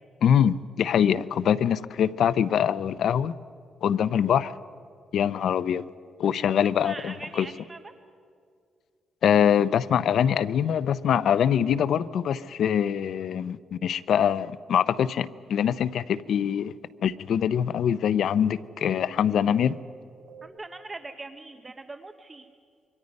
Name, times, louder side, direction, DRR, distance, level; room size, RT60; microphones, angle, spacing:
voice 1, 0.2-3.3 3.8-4.5 5.1-5.8 6.2-7.5 9.2-16.7 17.0-19.8, left 8 dB, 65° left, 0.6 m, -24 dB
voice 2, 6.8-7.9 20.4-22.5, right 3 dB, 20° right, 0.8 m, -41 dB
sound 1, 15.9-20.5, right 4 dB, 50° right, 5.7 m, -52 dB
27.0 x 23.5 x 5.3 m
cardioid pair, 140°, 0 cm